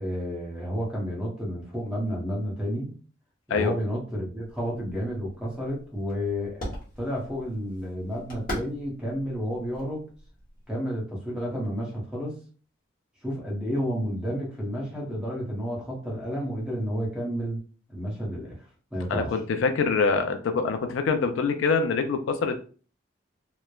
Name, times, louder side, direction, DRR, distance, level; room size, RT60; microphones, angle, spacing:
voice 1, 0.0-2.9 3.5-10.1 10.7-12.4 13.2-17.6 17.9-18.6 18.9-19.4, equal, 5° right, -4 dB, 0.8 m, -31 dB
sound 1, 4.4-10.7, equal, 45° left, 1.0 m, -41 dB
voice 2, 19.1-22.7, left 4 dB, 80° left, 7 dB, 0.4 m, -25 dB
3.0 x 2.0 x 2.3 m, 0.39 s
head